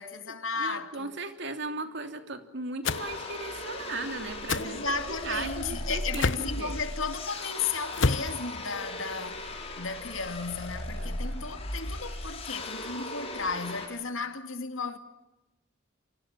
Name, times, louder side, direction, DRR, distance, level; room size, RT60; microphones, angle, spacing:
voice 1, 0.0-1.2 4.5-15.0, left 4 dB, 80° left, 2.3 m, -34 dB
voice 2, 0.6-4.8 5.1-6.8 10.9-11.4, right 3 dB, 60° right, 3.0 m, -37 dB
sound 1, 2.8-3.1 4.5-4.7 6.1-6.5 7.9-8.3, left 3 dB, 65° left, 1.1 m, -27 dB
sound 2, 2.8-13.9, left 1 dB, 30° left, 6.5 m, -38 dB
30.0 x 25.0 x 7.5 m
head